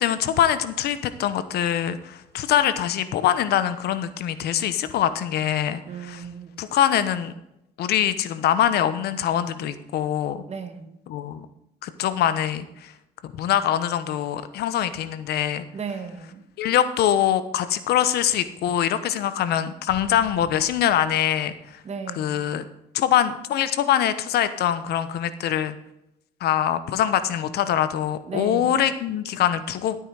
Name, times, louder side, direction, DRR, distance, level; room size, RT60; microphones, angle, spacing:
voice 1, 0.0-6.2 6.6-7.3 7.8-10.4 11.1-11.5 11.8-12.9 13.2-15.6 16.6-21.8 22.1-22.6 22.9-25.7 26.4-29.9, left 10 dB, 70° left, 13 dB, 1.0 m, -23 dB
voice 2, 5.9-6.6 10.5-11.0 15.7-16.5 21.8-22.5 28.3-28.9, right 6 dB, 40° right, 8 dB, 1.8 m, -35 dB
sound 1, 19.9-22.0, left 2 dB, 10° left, 4.0 m, -48 dB
13.0 x 8.9 x 4.8 m, 0.84 s
cardioid pair, 110°, 17 cm